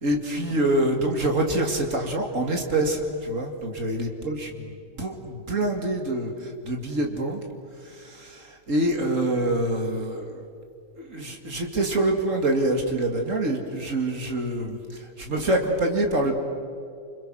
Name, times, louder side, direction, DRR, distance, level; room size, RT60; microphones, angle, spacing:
voice 1, 0.0-7.4 7.8-10.4 11.0-16.4, right 1 dB, 50° right, 3 dB, 2.7 m, -26 dB
29.0 x 26.5 x 6.4 m, 2.4 s
omnidirectional pair, 1.8 m